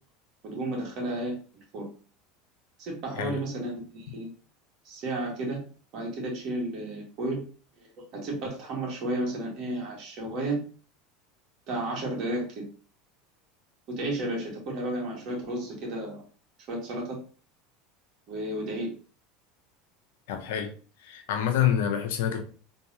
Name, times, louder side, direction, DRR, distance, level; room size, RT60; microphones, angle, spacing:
voice 1, 0.4-1.4 1.7-1.9 2.8-4.3 4.8-5.6 5.9-7.4 7.8-10.6 11.7-12.6 13.9-16.2 16.7-17.2 18.3-18.9, right 1 dB, 55° right, -1 dB, 2.0 m, -32 dB
voice 2, 20.3-20.7 21.0-22.4, left 9 dB, 75° left, 6 dB, 0.8 m, -27 dB
3.9 x 3.4 x 2.9 m, 0.39 s
supercardioid pair, 100°, 0 cm